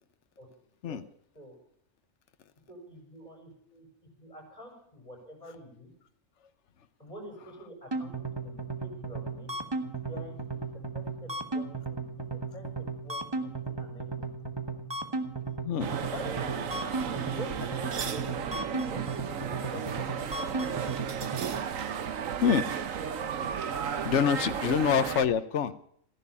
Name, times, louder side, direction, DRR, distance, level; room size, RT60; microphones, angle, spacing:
voice 1, 2.7-5.9 7.0-9.5 10.1-10.6 10.9-14.3 16.1-18.6 18.8-20.7 24.6-24.8, equal, 30° left, 2 dB, 7.1 m, -46 dB
sound 1, 7.9-21.4, right 3 dB, 20° right, 1.4 m, -35 dB
sound 2, 15.8-25.2, right 7 dB, 85° right, 1.4 m, -34 dB
voice 2, 23.2-23.5 24.0-25.8, left 7 dB, 65° left, 11 dB, 1.2 m, -26 dB
15.0 x 11.0 x 8.6 m, 0.65 s
omnidirectional pair, 1.3 m